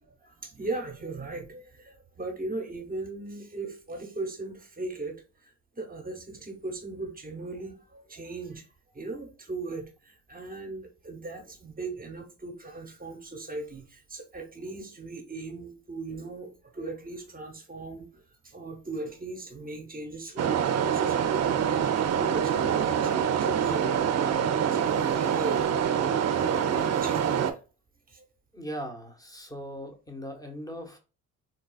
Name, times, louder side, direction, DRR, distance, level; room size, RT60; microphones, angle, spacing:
voice 1, 0.0-8.7 8.9-25.6 26.3-27.6 28.1-28.3, right 2 dB, 25° right, 1.0 m, -38 dB
sound 1, 20.4-27.5, right 8 dB, 45° right, 0.5 m, -25 dB
voice 2, 28.5-31.0, equal, 10° left, 1.1 m, -39 dB
4.0 x 2.2 x 2.3 m
supercardioid pair, 70°, 36 cm